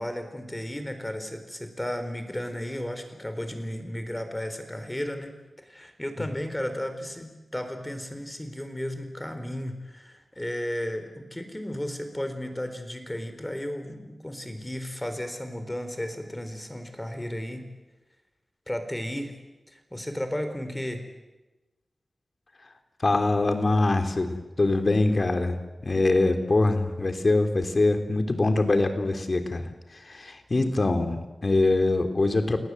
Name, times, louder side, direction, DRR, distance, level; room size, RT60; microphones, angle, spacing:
voice 1, 0.0-17.7 18.7-19.4 19.7-21.1, left 1 dB, 15° left, 8 dB, 4.2 m, -34 dB
voice 2, 23.0-25.6 25.8-29.7 30.0-32.6, left 2 dB, 50° left, 6 dB, 3.1 m, -23 dB
29.0 x 18.5 x 7.8 m, 1.1 s
wide cardioid pair, 60°, 0 cm